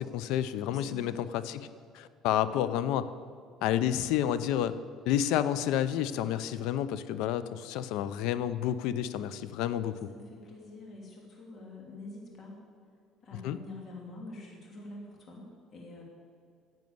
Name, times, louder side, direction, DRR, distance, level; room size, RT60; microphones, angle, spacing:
voice 1, 0.0-1.7 1.9-3.1 3.6-4.8 5.1-10.1 13.4-13.6, left 11 dB, 80° left, 14 dB, 0.6 m, -30 dB
voice 2, 0.6-1.3 9.8-12.6 13.2-16.0, left 2 dB, 40° left, -1 dB, 3.0 m, -46 dB
10.5 x 7.6 x 9.4 m, 2.2 s
cardioid pair, 125°, 0 cm